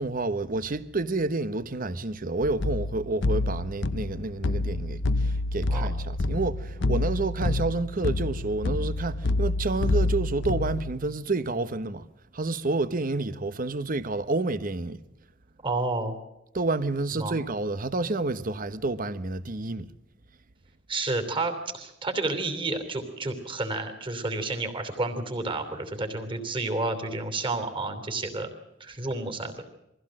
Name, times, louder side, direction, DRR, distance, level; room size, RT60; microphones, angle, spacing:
voice 1, 0.0-12.0 12.3-15.0 16.5-19.9, right 3 dB, 45° right, 1.0 m, -29 dB
sound 1, 2.4-10.9, left 2 dB, 65° left, 0.7 m, -28 dB
voice 2, 15.6-16.2 17.1-17.4 20.9-28.5 28.8-29.6, right 2 dB, 25° right, 3.1 m, -30 dB
23.0 x 16.0 x 7.6 m
head